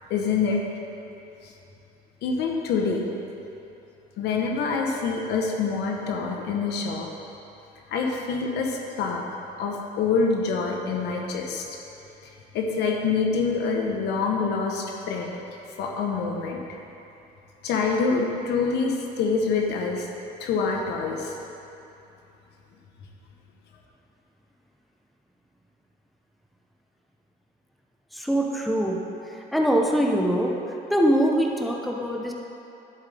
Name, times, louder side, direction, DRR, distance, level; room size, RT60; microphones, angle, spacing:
voice 1, 0.1-0.6 1.4-1.5 2.2-3.0 4.2-7.1 7.9-9.2 9.6-11.7 12.5-15.3 15.8-16.6 17.6-20.1 20.4-21.4, left 4 dB, 80° left, 0 dB, 1.2 m, -26 dB
voice 2, 28.1-29.0 29.5-30.5 30.9-32.3, equal, ahead, -1 dB, 0.9 m, -23 dB
11.0 x 8.0 x 3.5 m, 2.9 s
cardioid pair, 110°, 17 cm